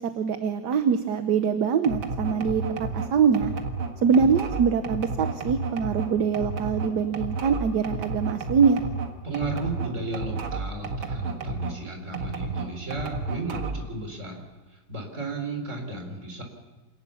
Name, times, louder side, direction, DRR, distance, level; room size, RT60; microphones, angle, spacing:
voice 1, 0.0-3.5 4.0-8.8, right 6 dB, 60° right, 8 dB, 1.5 m, -23 dB
sound 1, 1.8-11.8 12.1-13.9, right 3 dB, 85° right, 2.7 m, -32 dB
voice 2, 9.2-16.4, right 3 dB, 35° right, 3 dB, 4.8 m, -34 dB
27.5 x 19.0 x 7.1 m, 1.2 s
omnidirectional pair, 2.1 m